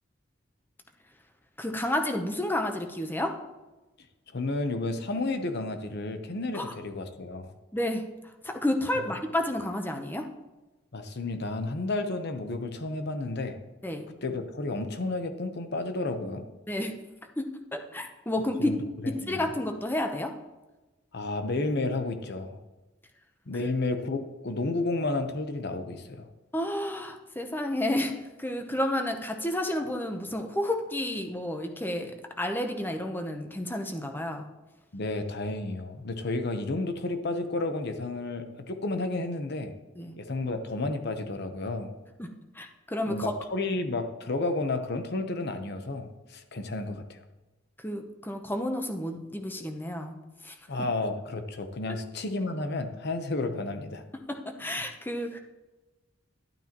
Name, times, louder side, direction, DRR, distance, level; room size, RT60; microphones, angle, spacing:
voice 1, 1.6-3.4 6.5-6.7 7.7-8.1 8.4-10.3 13.8-14.1 16.7-17.0 17.4-18.8 19.1-20.4 23.5-23.7 26.5-34.5 40.0-40.2 42.2-43.3 47.8-50.2 50.4-50.9 54.1-55.4, left 1 dB, 10° left, 4 dB, 0.8 m, -31 dB
voice 2, 4.3-7.5 9.0-9.1 10.9-13.6 14.2-16.4 18.6-18.8 19.3-19.5 21.1-22.6 23.5-26.3 34.9-39.7 40.2-41.9 43.1-47.2 50.7-54.0, left 2 dB, 55° left, 8 dB, 0.9 m, -31 dB
12.0 x 8.8 x 3.0 m, 1.1 s
head